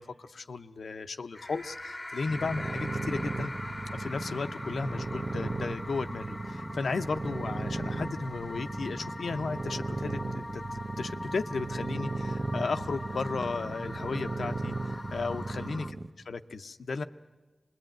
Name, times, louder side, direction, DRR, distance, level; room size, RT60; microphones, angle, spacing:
voice 1, 0.0-3.5 3.9-15.9 16.3-17.0, left 4 dB, 85° left, 10 dB, 0.7 m, -35 dB
sound 1, 1.3-15.9, left 1 dB, 30° left, 0.9 m, -42 dB
sound 2, 2.3-16.1, right 2 dB, 55° right, 1.2 m, -36 dB
25.0 x 20.5 x 9.0 m, 1.2 s
cardioid pair, 40°, 0 cm